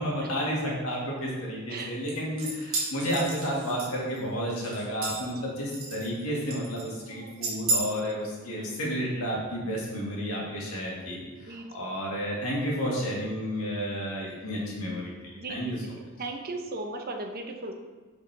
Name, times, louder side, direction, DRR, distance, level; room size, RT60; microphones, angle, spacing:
voice 1, 0.0-15.1 15.5-15.8, equal, 80° left, -4 dB, 1.8 m, -31 dB
sound 1, 2.1-4.2 4.6-5.4 5.7-6.2 6.5-7.0 7.4-7.8, right 3 dB, 65° right, 1.7 m, -32 dB
voice 2, 11.5-11.9 15.4-17.8, right 2 dB, 45° right, 3 dB, 0.8 m, -38 dB
6.2 x 5.2 x 3.4 m, 1.3 s
head